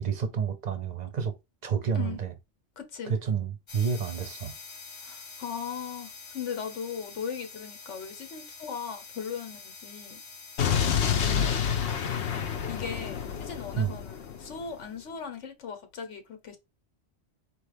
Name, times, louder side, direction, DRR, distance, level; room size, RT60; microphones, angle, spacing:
voice 1, 0.0-1.3 1.6-2.3 3.0-4.6 13.8-14.0, right 6 dB, 45° right, 0.6 m, -29 dB
voice 2, 2.8-3.1 5.0-10.2 10.7-11.8 12.1-12.2 12.7-16.6, left 7 dB, 90° left, 1.3 m, -38 dB
sound 1, 3.7-15.0, left 4 dB, 30° left, 0.6 m, -47 dB
Explosion, 10.6-14.6, left 8 dB, 70° left, 0.9 m, -28 dB
4.4 x 3.3 x 3.3 m
omnidirectional pair, 1.2 m